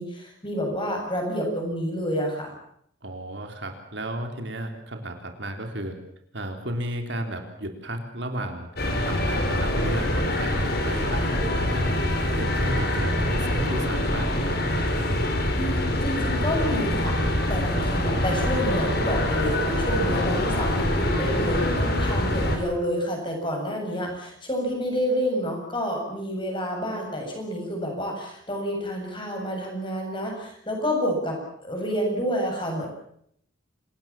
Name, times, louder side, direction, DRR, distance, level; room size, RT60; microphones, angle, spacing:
voice 1, 0.0-2.5 15.5-17.1 17.5-32.9, equal, 25° left, 1 dB, 7.7 m, -29 dB
voice 2, 3.0-6.0 6.3-8.7 9.0-10.6 10.8-11.9 12.3-14.6, right 1 dB, 60° right, 5 dB, 3.5 m, -34 dB
sound 1, 8.8-22.6, left 1 dB, 50° left, 4.7 m, -25 dB
27.5 x 19.5 x 7.5 m, 0.70 s
head